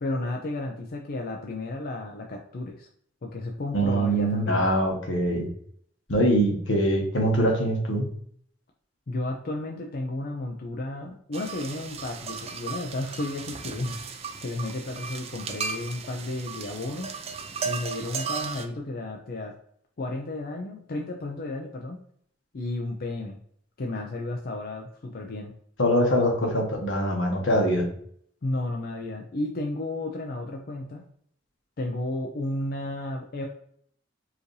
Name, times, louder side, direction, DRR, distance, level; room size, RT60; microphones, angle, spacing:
voice 1, 0.0-2.9 3.2-4.7 9.1-14.0 14.4-17.1 17.6-19.5 20.0-22.0 22.5-23.4 23.8-25.5 28.4-31.1 31.8-33.5, left 2 dB, 50° left, 1 dB, 0.5 m, -33 dB
voice 2, 3.7-5.5 6.1-8.1 25.8-27.9, equal, 80° left, 0 dB, 1.2 m, -23 dB
sound 1, 11.3-18.7, right 5 dB, 35° right, 0.4 m, -35 dB
4.7 x 2.7 x 3.1 m, 0.64 s
head